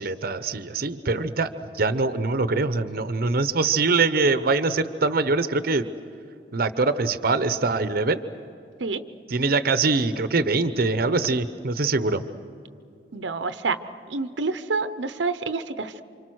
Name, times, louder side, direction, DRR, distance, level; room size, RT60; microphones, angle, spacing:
voice 1, 0.0-5.9 6.5-8.2 9.3-12.2, right 3 dB, 55° right, 12 dB, 0.8 m, -23 dB
voice 2, 13.1-13.8 14.1-16.0, right 4 dB, 85° right, 11 dB, 0.8 m, -28 dB
28.5 x 26.0 x 6.3 m, 2.6 s
head